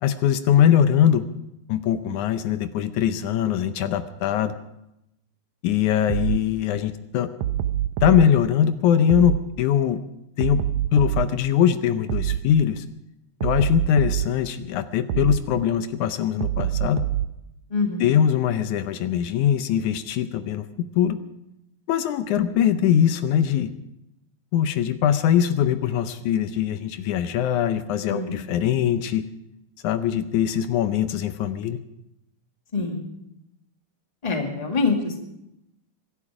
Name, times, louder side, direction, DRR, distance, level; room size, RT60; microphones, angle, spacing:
voice 1, 0.0-1.3 1.7-4.5 5.6-7.3 8.0-10.0 10.4-10.6 10.9-12.9 13.4-17.1 18.0-21.2 21.9-23.7 24.5-29.3 29.8-31.8, left 9 dB, 80° left, 10 dB, 2.1 m, -22 dB
sound 1, 6.1-6.4 7.4-8.3 9.1-9.4 10.4-11.3 12.1-12.4 13.4-14.3 15.1-15.4 16.4-17.3, right 12 dB, 75° right, 1.9 m, -25 dB
voice 2, 17.7-18.2 22.3-22.5 28.1-28.8 32.7-33.1 34.2-35.2, left 4 dB, 15° left, 2 dB, 1.9 m, -26 dB
25.0 x 11.5 x 4.9 m, 0.85 s
omnidirectional pair, 3.5 m